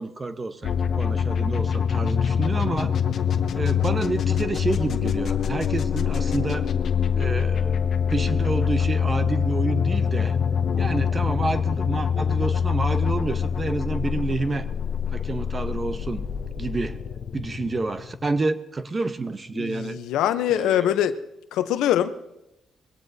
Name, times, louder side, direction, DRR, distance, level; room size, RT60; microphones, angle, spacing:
voice 1, 0.0-3.0 3.6-6.7 7.2-10.4 10.8-14.7 15.1-16.2 16.6-17.0 17.3-20.0 20.5-20.9, right 3 dB, 30° right, 10 dB, 1.0 m, -29 dB
sound 1, 0.6-18.4, left 7 dB, 60° left, 0.8 m, -25 dB
voice 2, 19.5-21.2 21.5-22.1, left 11 dB, 90° left, 11 dB, 0.7 m, -23 dB
22.5 x 17.5 x 2.7 m, 0.94 s
cardioid pair, 90°, 0 cm